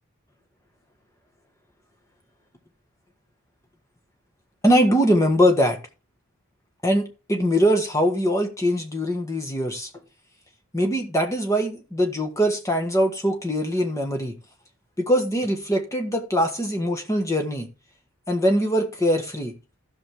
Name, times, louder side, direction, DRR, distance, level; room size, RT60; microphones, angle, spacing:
voice 1, 4.6-5.8 6.8-9.9 10.7-14.3 15.0-17.7 18.3-19.5, equal, 15° left, 1.5 m, -22 dB
14.5 x 6.3 x 3.5 m
head